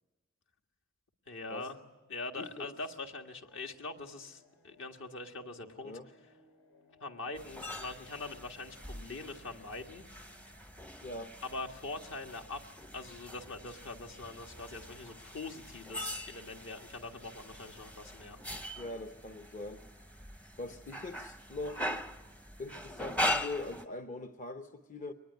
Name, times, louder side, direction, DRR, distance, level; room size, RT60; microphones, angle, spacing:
voice 1, 1.3-1.8 2.1-6.0 7.0-10.0 11.4-12.6 12.9-18.4, left 3 dB, 60° left, 4 dB, 1.7 m, -43 dB
voice 2, 2.4-2.7 5.8-6.1 11.0-11.3 18.7-19.8 20.6-21.9 22.6-25.1, left 2 dB, 35° left, 6 dB, 0.8 m, -42 dB
sound 1, 3.1-19.6, left 2 dB, 85° left, 4.0 m, -68 dB
sound 2, 7.4-23.9, left 1 dB, 5° left, 0.7 m, -41 dB
23.0 x 19.5 x 9.4 m, 1.2 s
head